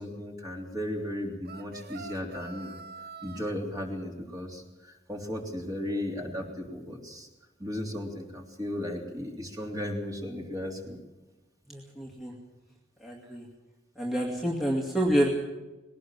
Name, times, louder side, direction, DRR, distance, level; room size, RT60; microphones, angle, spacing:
voice 1, 0.0-2.7 3.2-7.3 7.6-11.0, left 1 dB, 20° right, 0 dB, 3.3 m, -35 dB
sound 1, 1.4-3.5, right 4 dB, 50° right, 0.9 m, -45 dB
voice 2, 11.7-12.3 13.0-13.5 14.0-15.3, equal, ahead, -4 dB, 2.3 m, -28 dB
20.5 x 18.0 x 7.5 m, 1.1 s
head